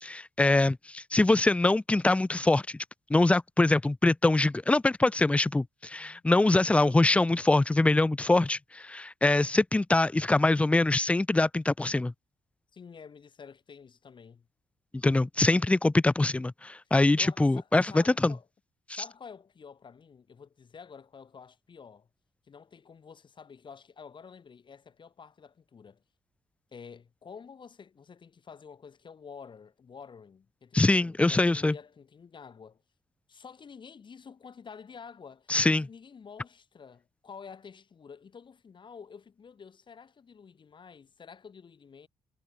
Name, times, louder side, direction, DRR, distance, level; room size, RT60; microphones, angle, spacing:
voice 1, 0.0-2.8 3.1-12.1 15.0-18.3 18.9-19.0 30.7-31.7 35.5-35.9, left 2 dB, 10° left, 0.4 m, -24 dB
voice 2, 5.9-6.2 12.7-14.5 17.2-18.5 18.9-22.1 22.5-26.0 26.7-32.8 33.3-42.1, left 6 dB, 45° left, 1.6 m, -49 dB
cardioid pair, 70°, 11 cm